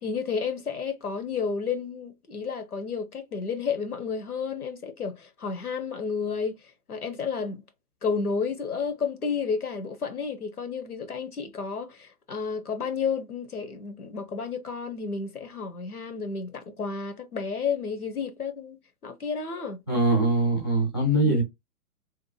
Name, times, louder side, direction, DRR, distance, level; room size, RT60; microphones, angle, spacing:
voice 1, 0.0-6.6 6.9-7.6 8.0-19.8 21.2-21.4, left 5 dB, 80° left, 0.8 m, -31 dB
voice 2, 19.9-21.4, right 2 dB, 20° left, 0.4 m, -22 dB
2.8 x 2.0 x 2.6 m
figure-of-eight pair, 120°, 44 cm